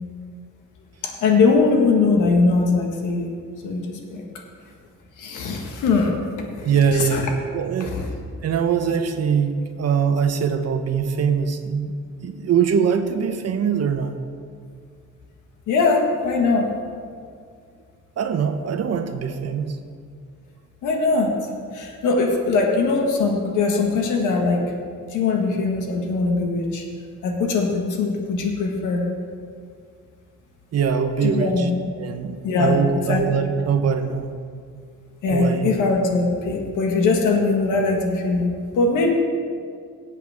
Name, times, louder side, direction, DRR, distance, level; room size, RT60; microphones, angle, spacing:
voice 1, 1.0-3.3 3.6-4.2 5.2-6.1 6.6-7.2 7.8-8.1 15.7-16.7 20.8-21.4 21.7-24.6 25.1-26.8 27.2-29.0 31.2-31.7 32.4-32.8 33.1-33.2 35.2-38.5 38.7-39.1, left 4 dB, 85° left, 2 dB, 1.7 m, -21 dB
voice 2, 6.6-7.3 7.5-8.0 8.4-11.9 12.2-14.1 18.2-19.8 30.7-31.7 32.0-34.3 35.3-35.7, right 7 dB, 55° right, 7 dB, 1.1 m, -22 dB
18.0 x 8.3 x 3.6 m, 2.2 s
cardioid pair, 90°, 30 cm